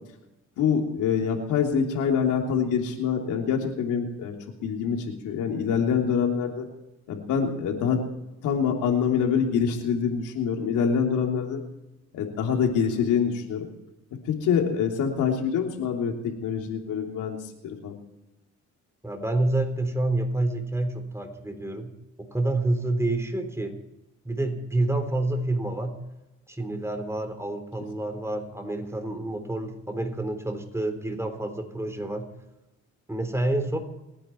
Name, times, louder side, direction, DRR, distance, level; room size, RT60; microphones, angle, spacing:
voice 1, 0.6-4.3 4.6-6.7 7.1-8.0 8.4-11.6 12.1-13.6 14.3-17.4 17.6-18.0, left 7 dB, 90° left, 2 dB, 3.3 m, -25 dB
voice 2, 19.0-21.9 22.2-23.8 24.3-26.0 26.5-32.3 33.1-33.8, right 2 dB, 10° right, 6 dB, 3.7 m, -28 dB
29.0 x 10.0 x 4.6 m, 0.97 s
cardioid pair, 90°, 30 cm